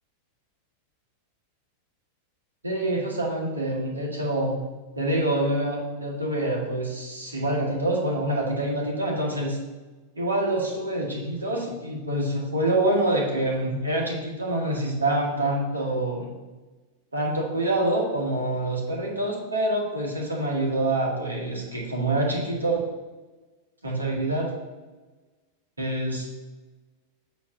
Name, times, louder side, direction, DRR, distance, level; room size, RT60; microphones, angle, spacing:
voice 1, 2.6-4.6 5.0-9.6 10.2-16.3 17.1-22.8 23.8-24.5 25.8-26.3, right 1 dB, 80° right, -2 dB, 1.9 m, -26 dB
8.2 x 3.5 x 6.2 m, 1.2 s
figure-of-eight pair, 90°, 0 cm